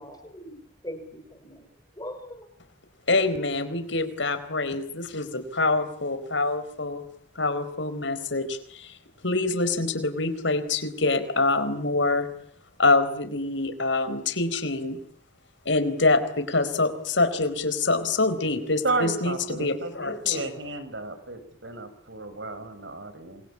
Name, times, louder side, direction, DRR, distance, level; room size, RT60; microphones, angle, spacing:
voice 1, 0.0-1.6 2.0-2.5, equal, 20° left, 6 dB, 5.4 m, -41 dB
voice 2, 3.1-7.0 7.4-9.0 9.2-12.3 12.8-15.0 15.7-20.5, left 3 dB, 80° left, 12 dB, 4.2 m, -25 dB
voice 3, 18.8-23.4, right 2 dB, 75° right, 10 dB, 5.9 m, -32 dB
28.0 x 23.0 x 8.6 m, 0.65 s
head